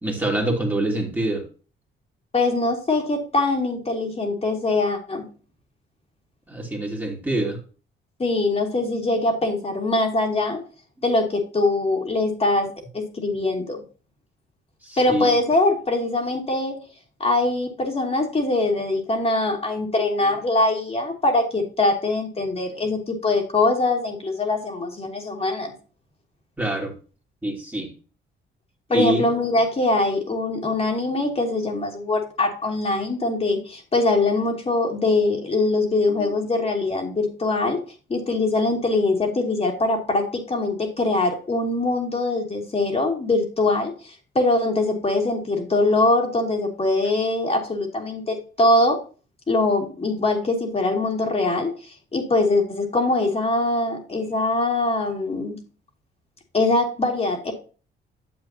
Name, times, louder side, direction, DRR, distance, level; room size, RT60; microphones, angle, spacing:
voice 1, 0.0-1.4 6.5-7.6 14.8-15.3 26.6-26.9 27.4-27.9 28.9-29.3 36.2-36.3, right 1 dB, 10° right, -1 dB, 2.4 m, -25 dB
voice 2, 2.3-5.3 8.2-10.6 11.0-13.8 15.0-16.8 17.2-25.7 28.9-37.8 38.1-49.0 49.5-55.6 56.5-57.5, left 2 dB, 30° left, 1 dB, 2.3 m, -22 dB
9.3 x 7.2 x 2.8 m, 0.36 s
cardioid pair, 90°, 20 cm